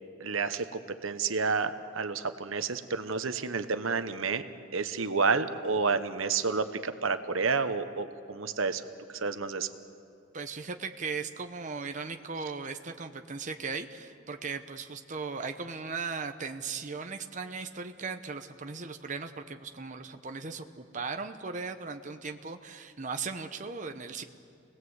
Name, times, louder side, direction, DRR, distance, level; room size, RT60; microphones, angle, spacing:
voice 1, 0.2-4.4 4.7-8.8 9.1-9.7, right 4 dB, 85° right, 10 dB, 1.1 m, -30 dB
voice 2, 10.3-24.2, right 4 dB, 40° right, 6 dB, 0.9 m, -37 dB
29.5 x 19.5 x 8.0 m, 2.4 s
head